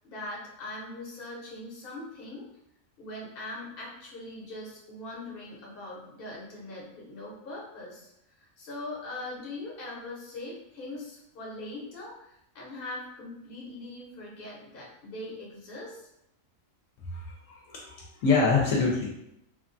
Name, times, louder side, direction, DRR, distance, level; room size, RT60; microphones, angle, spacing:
voice 1, 0.0-2.4 3.0-8.1 8.3-16.1, left 2 dB, 50° left, -4 dB, 1.0 m, -41 dB
voice 2, 17.7-19.1, left 4 dB, 80° left, -2 dB, 1.0 m, -25 dB
3.0 x 2.2 x 2.5 m, 0.80 s
omnidirectional pair, 1.4 m